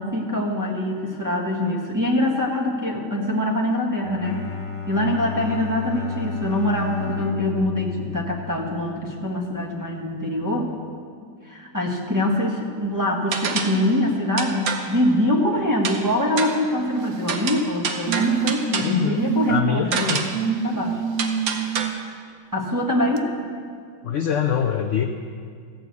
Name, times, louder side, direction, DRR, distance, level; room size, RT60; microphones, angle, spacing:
voice 1, 0.0-4.5 4.9-10.7 11.4-21.0 22.5-23.3, left 1 dB, 15° right, -3 dB, 1.1 m, -24 dB
Bowed string instrument, 3.9-9.2, left 6 dB, 50° left, 0.3 m, -32 dB
sound 1, 13.3-13.9 14.4-15.0 15.9-16.1 16.4-16.7 17.3-19.0 19.9-20.5 21.2-21.9, right 5 dB, 65° right, 1.3 m, -27 dB
sound 2, 16.8-17.4 18.1-18.8 19.2-19.6 20.3-21.9 23.2-23.3, right 9 dB, 80° right, 1.2 m, -27 dB
voice 2, 18.8-20.2 24.0-25.1, left 8 dB, 65° left, 5 dB, 0.7 m, -24 dB
14.5 x 6.5 x 8.1 m, 2.1 s
omnidirectional pair, 1.8 m